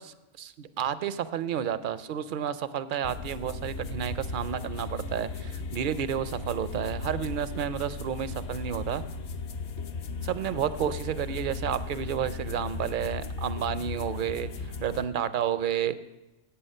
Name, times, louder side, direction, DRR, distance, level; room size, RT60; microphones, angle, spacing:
voice 1, 0.0-9.0 10.2-14.5 14.8-15.9, right 9 dB, 60° right, 14 dB, 0.6 m, -31 dB
sound 1, 3.0-15.1, left 3 dB, 65° left, 1.0 m, -36 dB
11.5 x 8.4 x 5.4 m, 1.0 s
omnidirectional pair, 1.2 m